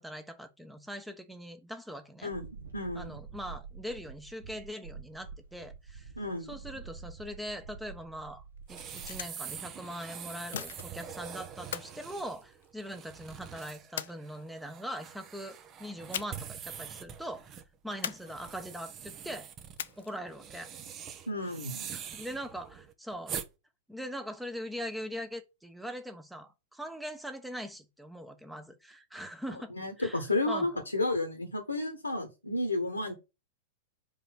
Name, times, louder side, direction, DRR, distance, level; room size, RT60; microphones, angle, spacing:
voice 1, 0.0-2.3 2.9-6.1 6.4-8.4 8.7-19.5 20.0-20.7 21.9-23.4 23.9-30.7, equal, 5° right, 1.1 m, -41 dB
voice 2, 2.2-3.2 6.2-6.6 21.3-21.9 29.8-33.1, left 2 dB, 85° left, 1.3 m, -32 dB
sound 1, 2.3-9.2, right 5 dB, 75° right, 2.2 m, -47 dB
sound 2, 8.6-9.6 10.5-11.2 11.7-13.0 14.0-14.7 16.1-16.6 16.9-17.0 18.0-18.8 19.8-20.3, left 10 dB, 60° left, 0.5 m, -40 dB
sound 3, 8.7-23.5, right 8 dB, 30° right, 0.9 m, -44 dB
5.2 x 4.4 x 5.9 m
figure-of-eight pair, 95°, 0 cm